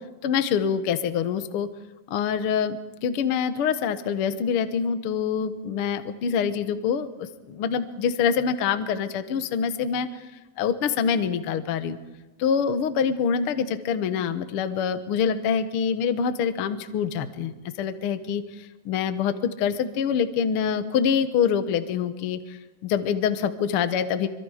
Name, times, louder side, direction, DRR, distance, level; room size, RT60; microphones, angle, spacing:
voice 1, 0.2-1.7 2.1-10.3 10.6-12.0 12.4-24.3, left 7 dB, 65° left, 9 dB, 1.4 m, -25 dB
26.0 x 25.0 x 5.0 m, 1.2 s
omnidirectional pair, 4.1 m